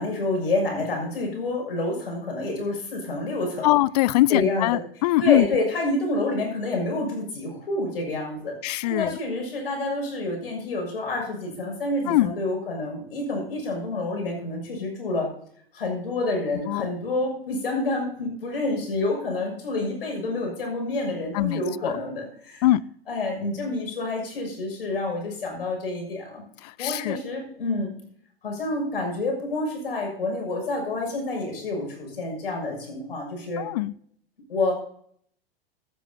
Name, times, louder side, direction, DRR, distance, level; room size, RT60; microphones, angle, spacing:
voice 1, 0.0-3.7 4.3-4.8 5.2-8.5 8.8-15.3 15.7-22.6 23.1-26.4 26.8-27.9 28.4-33.7 34.5-34.7, left 2 dB, 70° left, 6.5 m, -28 dB
voice 2, 3.6-5.5 8.6-9.2 12.1-12.3 16.7-16.9 21.3-21.9 22.6-22.8 26.6-27.2 33.6-33.9, left 16 dB, 40° left, 0.4 m, -22 dB
16.0 x 12.0 x 2.9 m
figure-of-eight pair, 100°, 31 cm